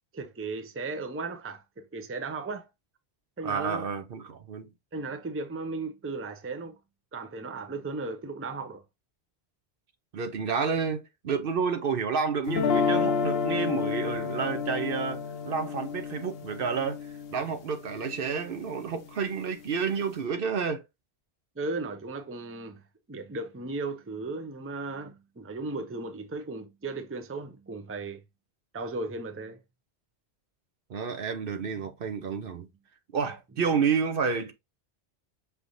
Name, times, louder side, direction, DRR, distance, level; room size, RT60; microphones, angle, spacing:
voice 1, 0.1-2.7 3.4-3.9 4.9-6.8 7.1-8.8 21.6-22.8 23.1-28.2 28.7-29.6, right 3 dB, 15° right, 0.5 m, -36 dB
voice 2, 3.4-4.7 10.1-20.8 30.9-32.7 33.1-34.5, right 6 dB, 60° right, 0.8 m, -30 dB
sound 1, 12.5-18.6, left 6 dB, 65° left, 0.9 m, -30 dB
5.9 x 3.5 x 2.5 m
omnidirectional pair, 1.1 m